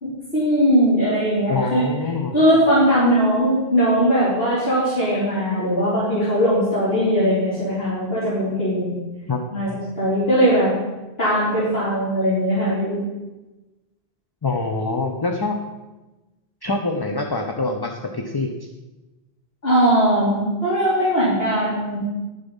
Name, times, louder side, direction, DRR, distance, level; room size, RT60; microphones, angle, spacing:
voice 1, 0.0-1.9 2.3-9.0 9.5-10.7 11.2-13.0 19.6-22.0, equal, 70° left, -11 dB, 3.5 m, -19 dB
voice 2, 1.5-2.3 9.3-9.4 14.4-15.6 16.6-18.7, left 3 dB, 25° left, 3 dB, 0.6 m, -25 dB
11.0 x 7.2 x 5.4 m, 1.1 s
omnidirectional pair, 1.1 m